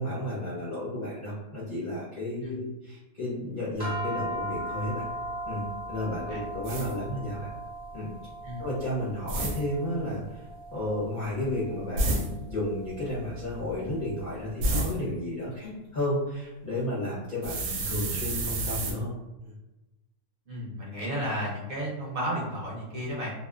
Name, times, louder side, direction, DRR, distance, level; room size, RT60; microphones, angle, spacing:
voice 1, 0.0-5.0 5.5-7.5 7.9-8.1 8.6-19.1 19.4-19.6, left 1 dB, 45° left, -9 dB, 0.6 m, -32 dB
sound 1, 3.8-14.3, right 1 dB, 20° right, 0.8 m, -39 dB
sound 2, 6.6-6.9 9.3-9.6 12.0-12.3 14.6-14.9 17.4-18.9, right 1 dB, 70° right, 1.0 m, -29 dB
voice 2, 20.5-23.3, equal, 55° right, -5 dB, 0.6 m, -33 dB
2.7 x 2.1 x 2.3 m, 1.0 s
omnidirectional pair, 1.6 m